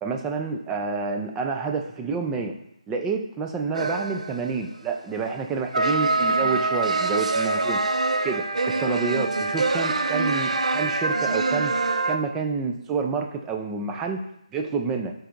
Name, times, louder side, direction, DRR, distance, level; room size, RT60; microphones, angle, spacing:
voice 1, 0.0-2.6 2.9-7.8 8.2-11.8 12.1-14.2 14.5-15.1, right 4 dB, 10° right, 3 dB, 0.4 m, -28 dB
sound 1, 3.7-4.5 5.7-12.2, right 3 dB, 75° right, 0.5 m, -24 dB
9.8 x 4.0 x 2.6 m, 0.78 s
figure-of-eight pair, 155°, 4 cm